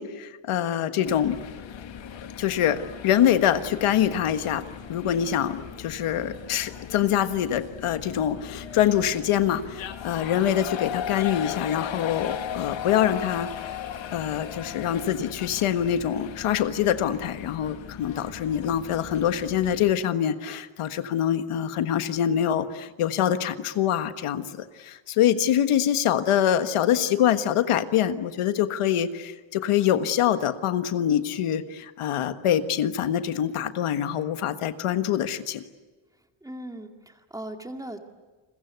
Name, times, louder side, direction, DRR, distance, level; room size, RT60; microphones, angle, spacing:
voice 1, 0.0-1.4 2.4-4.6 4.9-13.5 14.1-24.4 24.8-35.6, left 10 dB, 80° left, 10 dB, 1.6 m, -25 dB
sound 1, 1.1-19.9, left 9 dB, 65° left, 1.9 m, -37 dB
voice 2, 36.4-38.0, right 1 dB, 5° right, 5 dB, 2.1 m, -38 dB
30.0 x 22.5 x 8.2 m, 1.3 s
cardioid pair, 160°, 50 cm